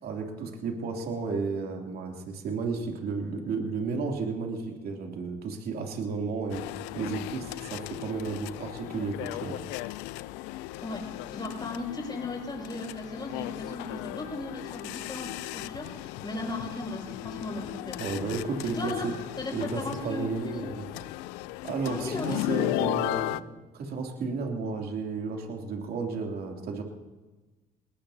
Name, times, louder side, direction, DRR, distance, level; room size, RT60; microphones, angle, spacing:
voice 1, 0.0-6.6 6.9-9.6 18.0-19.1 19.5-20.9 21.6-26.8, right 4 dB, 60° right, 1 dB, 3.0 m, -33 dB
sound 1, 6.5-23.4, left 17 dB, 80° left, 0.4 m, -36 dB
voice 2, 11.3-18.1 18.6-19.1 19.4-20.7 21.8-22.7, left 2 dB, 25° left, -2 dB, 6.2 m, -36 dB
20.0 x 20.0 x 2.8 m, 1.2 s
supercardioid pair, 65°, 18 cm